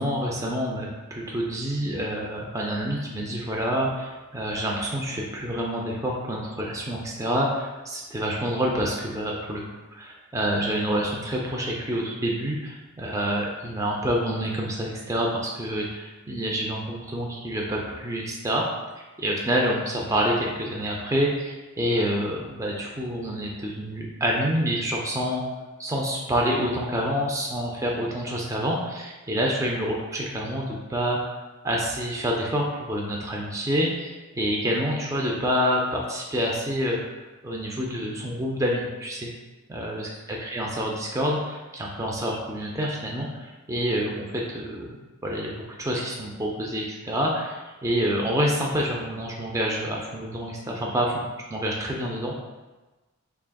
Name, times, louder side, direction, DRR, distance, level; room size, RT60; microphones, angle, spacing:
voice 1, 0.0-9.6 9.9-18.6 19.0-25.4 25.8-31.2 31.6-37.0 37.4-39.3 39.7-51.2 51.5-52.3, equal, 15° right, -2 dB, 0.4 m, -27 dB
4.7 x 3.3 x 2.2 m, 1.2 s
head